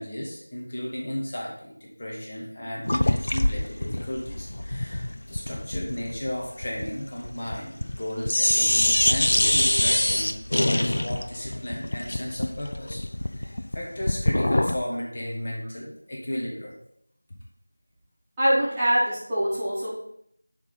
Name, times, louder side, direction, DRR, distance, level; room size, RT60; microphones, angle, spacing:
voice 1, 0.0-16.8, left 1 dB, 25° left, -3 dB, 1.3 m, -34 dB
sound 1, 2.9-8.0 8.3-14.8, left 1 dB, 50° left, 0.5 m, -25 dB
voice 2, 18.4-19.9, equal, 5° right, -13 dB, 1.4 m, -23 dB
10.5 x 3.5 x 5.5 m, 0.71 s
figure-of-eight pair, 175°, 0 cm